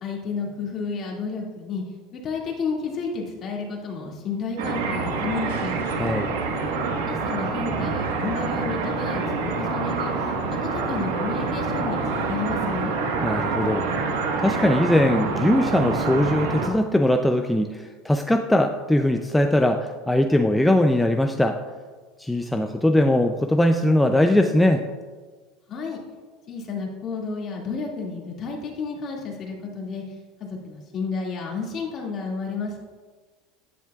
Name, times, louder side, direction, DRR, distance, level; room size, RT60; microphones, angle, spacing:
voice 1, 0.0-1.8 2.1-5.7 7.1-10.3 10.6-12.9 25.7-26.0 26.5-30.0 30.4-32.8, left 4 dB, 40° left, -1 dB, 2.2 m, -31 dB
sound 1, 4.6-16.7, right 4 dB, 90° right, 1.4 m, -26 dB
voice 2, 6.0-6.3 13.2-13.9 14.4-21.6 22.2-24.9, left 1 dB, 5° left, 5 dB, 0.4 m, -20 dB
11.0 x 10.5 x 2.4 m, 1.4 s
supercardioid pair, 130°, 0 cm